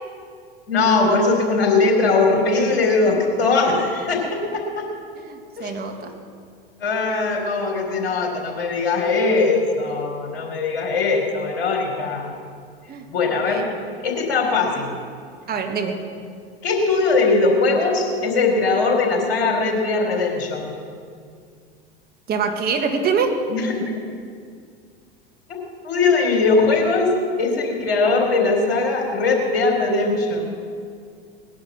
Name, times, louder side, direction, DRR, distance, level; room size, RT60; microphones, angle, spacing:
voice 1, 0.7-4.9 5.6-5.7 6.8-12.3 13.1-13.6 14.0-14.9 16.6-20.7 23.5-23.9 25.8-27.1 27.4-30.5, left 3 dB, 65° left, 1 dB, 3.8 m, -20 dB
voice 2, 5.2-6.1 12.9-13.1 13.4-13.6 15.5-16.0 22.3-23.4, right 5 dB, 30° right, 4 dB, 1.9 m, -24 dB
19.0 x 10.5 x 6.3 m, 2.2 s
figure-of-eight pair, 85°, 31 cm